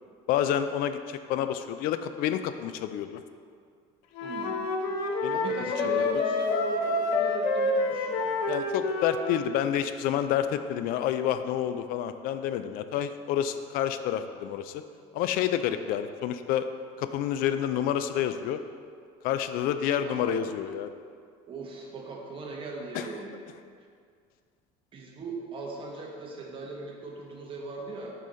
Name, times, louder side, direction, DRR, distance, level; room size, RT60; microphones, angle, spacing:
voice 1, 0.3-3.2 5.2-5.4 5.8-6.0 8.5-14.8 15.1-16.7 17.0-18.6 19.2-20.9 22.9-23.1, left 10 dB, 65° left, 10 dB, 0.4 m, -29 dB
Wind instrument woodwind instrument, 4.2-9.5, left 2 dB, 90° left, 0.7 m, -28 dB
voice 2, 4.2-4.6 5.1-8.4 20.0-20.4 21.5-23.3 24.9-28.1, right 3 dB, 35° right, -1 dB, 1.2 m, -38 dB
6.3 x 5.4 x 4.3 m, 2.2 s
cardioid pair, 140°, 16 cm